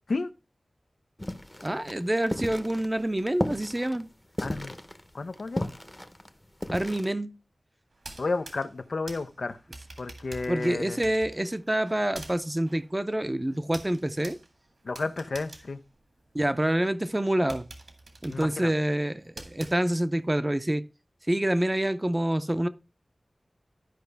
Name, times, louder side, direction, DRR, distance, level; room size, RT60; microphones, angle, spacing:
sound 1, 1.2-7.1, left 1 dB, 15° left, 0.8 m, -35 dB
voice 1, 1.6-4.1 6.7-7.3 10.5-14.4 16.3-17.7 18.2-20.8 21.3-22.7, right 1 dB, 20° right, 0.6 m, -27 dB
voice 2, 4.4-4.7 5.1-5.7 8.2-9.6 10.0-11.0 14.8-15.8 18.3-18.7, left 3 dB, 80° left, 0.6 m, -32 dB
sound 2, 7.9-16.7 17.1-17.2 17.5-20.3, right 2 dB, 80° right, 1.8 m, -47 dB
12.0 x 5.3 x 3.4 m
wide cardioid pair, 80°, 0 cm